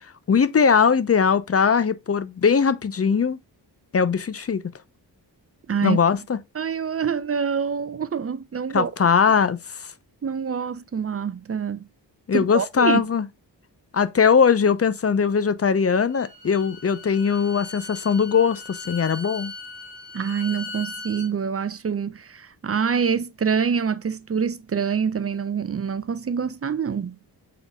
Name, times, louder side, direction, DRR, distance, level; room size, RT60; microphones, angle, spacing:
voice 1, 0.3-3.4 3.9-4.6 5.8-6.4 8.7-9.9 12.3-13.3 13.9-19.5, left 6 dB, 35° left, 0.6 m, -20 dB
voice 2, 5.7-6.0 6.6-8.9 10.2-11.8 12.3-13.0 20.1-27.2, right 6 dB, 35° right, 0.5 m, -26 dB
Bowed string instrument, 16.1-21.3, left 3 dB, 70° left, 1.8 m, -39 dB
5.7 x 3.8 x 2.2 m
cardioid pair, 50°, 44 cm